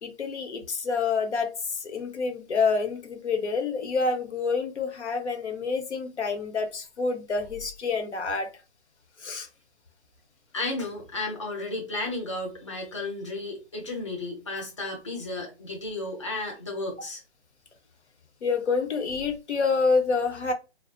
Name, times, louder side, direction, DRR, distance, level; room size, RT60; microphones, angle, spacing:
voice 1, 0.0-8.5 9.2-9.5 18.4-20.5, left 4 dB, 85° left, 0.9 m, -27 dB
voice 2, 10.5-17.2, left 2 dB, 30° left, 0.5 m, -33 dB
2.4 x 2.0 x 2.5 m
hypercardioid pair, 175°, 33 cm